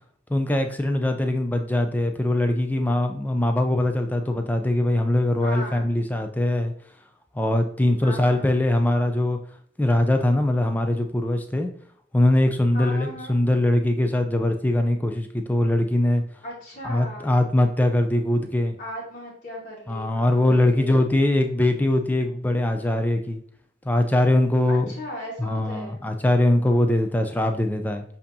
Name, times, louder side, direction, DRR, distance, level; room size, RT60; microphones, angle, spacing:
voice 1, 0.3-6.7 7.4-9.4 9.8-11.7 12.1-16.2 16.8-18.8 19.9-23.4 23.9-24.9 25.4-28.0, left 1 dB, 10° left, 5 dB, 0.3 m, -22 dB
voice 2, 5.4-5.8 8.0-8.5 12.7-13.4 16.4-17.4 18.8-20.9 22.2-22.4 22.7-23.1 24.7-26.0, left 1 dB, 40° left, -6 dB, 1.4 m, -37 dB
7.3 x 2.8 x 2.7 m, 0.62 s
head